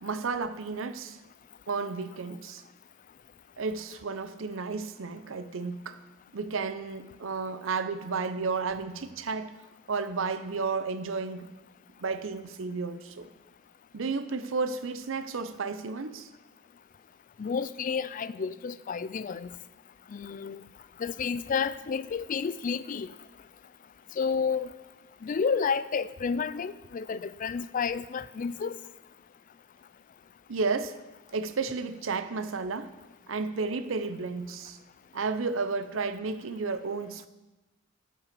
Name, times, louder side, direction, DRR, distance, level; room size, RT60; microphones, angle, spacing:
voice 1, 0.0-1.2 1.7-2.6 3.6-6.0 6.3-9.5 9.9-11.5 12.0-13.3 13.9-16.3 30.5-31.0 31.3-32.9 33.3-34.8 35.1-37.3, right 4 dB, 70° right, 12 dB, 0.7 m, -32 dB
voice 2, 17.4-19.5 20.1-20.6 21.0-23.1 24.2-24.7 25.2-28.7, left 6 dB, 40° left, 17 dB, 0.3 m, -30 dB
12.5 x 5.5 x 6.9 m, 1.1 s
head